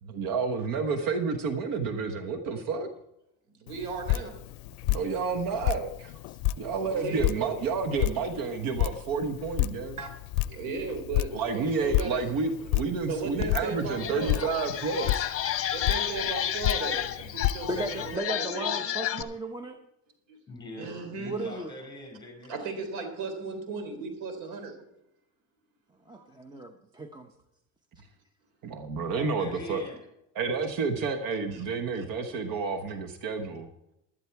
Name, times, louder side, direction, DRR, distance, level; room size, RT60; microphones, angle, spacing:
voice 1, 0.0-2.9 4.9-6.1 6.6-10.0 11.3-15.3 26.1-26.3 28.6-29.8 30.3-33.7, right 4 dB, 65° right, 1.3 m, -30 dB
voice 2, 3.6-4.4 6.9-7.6 10.0-10.2 10.5-12.2 13.1-14.4 15.7-17.0 17.3-18.9 20.3-20.4 20.8-21.5 22.5-24.8 31.5-31.6, right 4 dB, 80° right, 3.7 m, -36 dB
Drip, 3.7-18.2, left 17 dB, 80° left, 0.5 m, -32 dB
sound 1, 13.4-13.5 13.9-19.2, left 10 dB, 35° left, 1.2 m, -31 dB
voice 3, 17.7-19.8 21.3-21.7 26.1-27.3, right 1 dB, 10° right, 0.8 m, -35 dB
voice 4, 20.5-22.7 29.0-30.0, left 1 dB, 10° left, 6.2 m, -43 dB
12.5 x 12.0 x 4.7 m
cardioid pair, 125°, 38 cm